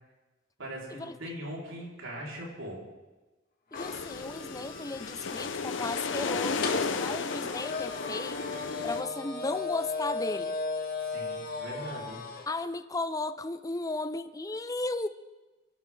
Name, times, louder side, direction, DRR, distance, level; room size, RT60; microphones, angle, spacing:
voice 1, 0.6-2.8 11.0-12.2, equal, 90° right, -4 dB, 4.7 m, -40 dB
sound 1, 3.7-9.0, left 4 dB, 65° left, 0.8 m, -34 dB
sound 2, 3.7-12.5, left 4 dB, 50° left, 1.9 m, -37 dB
voice 2, 3.7-8.4 8.8-10.6 12.5-15.1, left 2 dB, 20° left, 12 dB, 0.5 m, -35 dB
27.0 x 12.0 x 3.8 m, 1.2 s
head